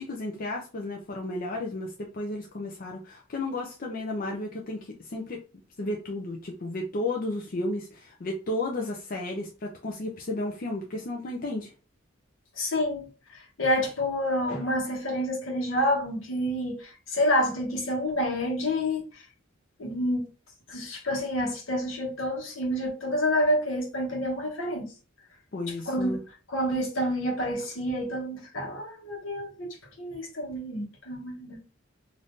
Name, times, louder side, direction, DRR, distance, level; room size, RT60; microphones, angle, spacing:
voice 1, 0.0-5.4 5.8-11.7 25.5-26.2, left 2 dB, 45° left, 0.5 m, -33 dB
voice 2, 12.6-13.1 13.3-19.2 19.8-20.3 20.7-24.9 25.9-26.2 26.5-31.6, equal, 70° left, 1.1 m, -28 dB
3.5 x 2.6 x 2.6 m
head